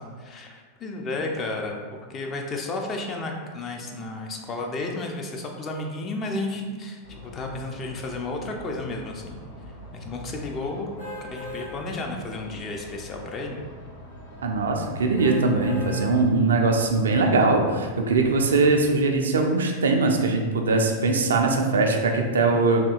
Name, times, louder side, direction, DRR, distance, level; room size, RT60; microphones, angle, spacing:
voice 1, 0.0-9.4 9.9-11.0 11.3-13.6, left 2 dB, 25° left, 2 dB, 0.4 m, -32 dB
sound 1, 7.0-19.0, left 3 dB, 80° left, 1.2 m, -43 dB
sound 2, 11.0-11.7 12.2-12.4 15.2-16.1 16.7-16.8, left 2 dB, 60° left, 1.2 m, -37 dB
voice 2, 14.4-22.8, right 3 dB, 65° right, 2 dB, 0.3 m, -21 dB
3.5 x 2.7 x 2.3 m, 1.5 s
figure-of-eight pair, 90°, 0 cm